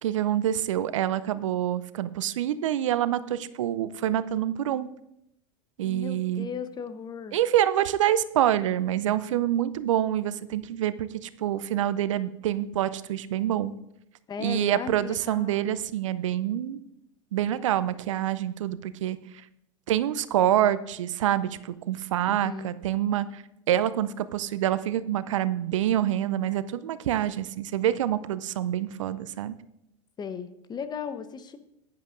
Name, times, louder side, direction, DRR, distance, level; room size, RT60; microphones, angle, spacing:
voice 1, 0.0-4.9 5.8-6.5 7.3-13.7 14.4-16.8 17.3-19.2 19.9-29.5, right 11 dB, 70° right, 15 dB, 0.5 m, -26 dB
voice 2, 5.8-7.4 14.3-15.6 22.3-22.7 30.2-31.6, left 6 dB, 25° left, 11 dB, 0.8 m, -36 dB
15.5 x 10.5 x 2.5 m, 0.81 s
figure-of-eight pair, 85°, 17 cm